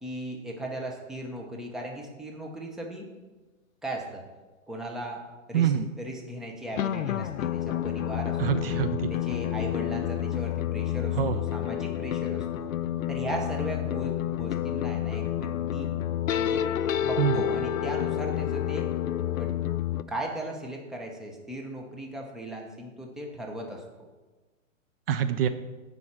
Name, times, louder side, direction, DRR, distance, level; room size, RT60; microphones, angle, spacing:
voice 1, 0.0-3.1 3.8-4.2 4.7-5.2 5.5-8.7 9.1-12.7 13.1-15.9 16.3-16.7 17.0-18.9 19.4-19.5 20.1-23.8, right 1 dB, ahead, 0 dB, 0.7 m, -37 dB
voice 2, 5.5-5.9 8.4-9.1 11.1-11.4 17.2-17.4 25.1-25.5, right 9 dB, 45° right, 10 dB, 0.6 m, -25 dB
sound 1, 6.7-20.0, left 11 dB, 80° left, 0.6 m, -29 dB
7.8 x 5.4 x 7.2 m, 1.2 s
hypercardioid pair, 140°, 40 cm